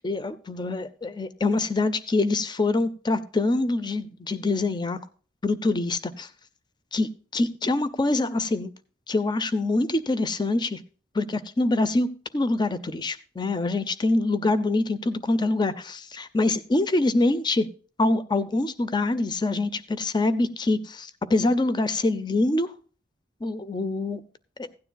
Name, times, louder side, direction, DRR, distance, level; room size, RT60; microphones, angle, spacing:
voice 1, 0.0-5.0 5.4-6.3 6.9-8.7 9.1-10.8 11.1-17.7 18.0-22.7 23.4-24.2 24.6-24.7, left 2 dB, 25° left, 0.6 m, -25 dB
16.0 x 9.6 x 2.3 m
head